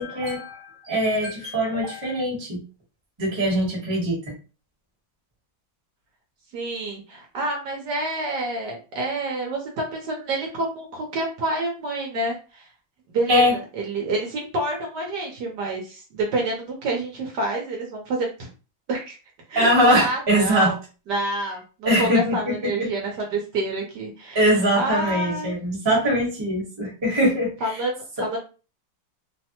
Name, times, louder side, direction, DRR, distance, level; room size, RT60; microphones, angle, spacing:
voice 1, 0.0-2.6 3.2-4.3 13.3-13.5 19.5-20.7 21.8-22.9 24.3-27.8, equal, 20° right, -3 dB, 0.9 m, -22 dB
voice 2, 6.5-12.7 13.1-18.3 18.9-19.1 19.5-20.8 21.1-24.5 24.8-25.5 27.6-28.4, right 2 dB, 70° right, 1 dB, 1.2 m, -28 dB
3.2 x 2.1 x 2.8 m, 0.34 s
omnidirectional pair, 2.1 m